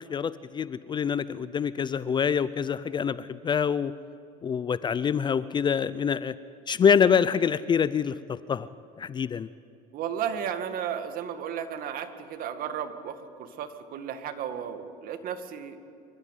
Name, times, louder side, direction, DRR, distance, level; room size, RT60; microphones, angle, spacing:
voice 1, 0.0-3.9 4.4-6.3 6.7-8.7 9.0-9.5, left 7 dB, 25° left, 17 dB, 0.5 m, -26 dB
voice 2, 9.9-15.8, right 8 dB, 55° right, 8 dB, 2.0 m, -34 dB
27.0 x 13.5 x 9.3 m, 2.6 s
supercardioid pair, 120°, 18 cm